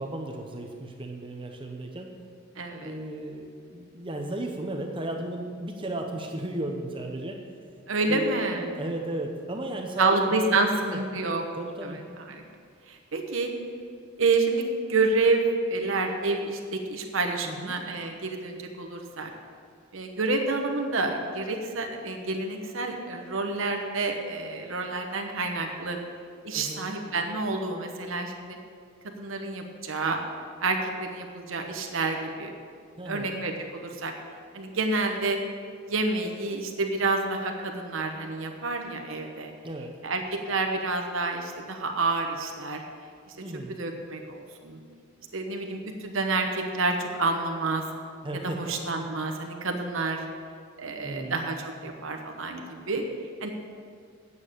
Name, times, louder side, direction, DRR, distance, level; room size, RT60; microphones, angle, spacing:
voice 1, 0.0-2.1 2.8-7.4 8.1-11.0 11.6-12.0 17.4-17.8 26.5-26.9 33.0-33.3 39.6-40.0 43.4-43.7 48.2-48.9 51.0-51.4, right 1 dB, 25° right, 2 dB, 0.7 m, -35 dB
voice 2, 2.6-3.0 7.9-8.7 10.0-11.4 11.8-12.0 12.3-12.4 12.9-13.5 14.2-19.3 19.9-26.0 26.4-28.6 29.2-30.2 30.6-32.5 33.1-34.1 34.5-35.4 35.9-39.5 40.0-42.8 43.8-44.8 45.3-47.9 48.6-50.2 50.8-53.0 53.4-53.5, right 3 dB, 70° right, 3 dB, 1.0 m, -28 dB
9.0 x 6.9 x 8.4 m, 2.2 s
head